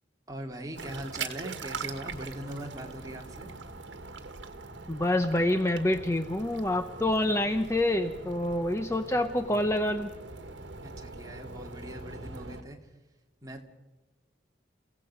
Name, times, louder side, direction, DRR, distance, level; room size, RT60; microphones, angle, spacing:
voice 1, 0.3-3.5 10.8-12.9 13.4-13.6, right 1 dB, 20° right, 1 dB, 2.4 m, -41 dB
sound 1, 0.8-12.6, right 4 dB, 70° right, 1.7 m, -42 dB
voice 2, 4.9-10.1, left 1 dB, 15° left, 7 dB, 0.7 m, -27 dB
29.5 x 17.0 x 5.6 m, 1.2 s
head